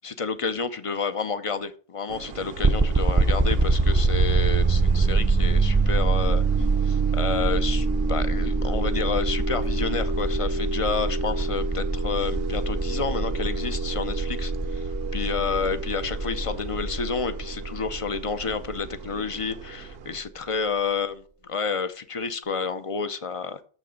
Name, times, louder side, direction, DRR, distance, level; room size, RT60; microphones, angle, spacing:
voice 1, 0.0-6.4 6.8-23.6, left 5 dB, 40° left, 12 dB, 0.5 m, -30 dB
sound 1, 2.1-20.2, right 8 dB, 65° right, 0.9 m, -42 dB
sound 2, 2.6-19.5, right 3 dB, 25° right, 0.4 m, -24 dB
sound 3, 9.3-17.0, left 3 dB, 60° left, 1.7 m, -39 dB
6.9 x 6.2 x 5.0 m, 0.41 s
omnidirectional pair, 1.1 m